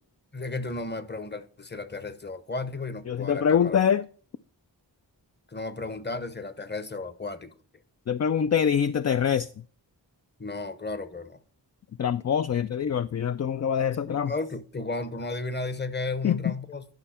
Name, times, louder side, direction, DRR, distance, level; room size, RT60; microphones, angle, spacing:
voice 1, 0.3-3.8 5.5-7.6 10.4-11.4 14.0-16.9, left 3 dB, 25° left, 0.9 m, -34 dB
voice 2, 3.1-4.0 8.1-9.5 12.0-14.3 16.2-16.5, left 8 dB, 40° left, 0.4 m, -24 dB
10.5 x 5.5 x 4.3 m
cardioid pair, 40°, 43 cm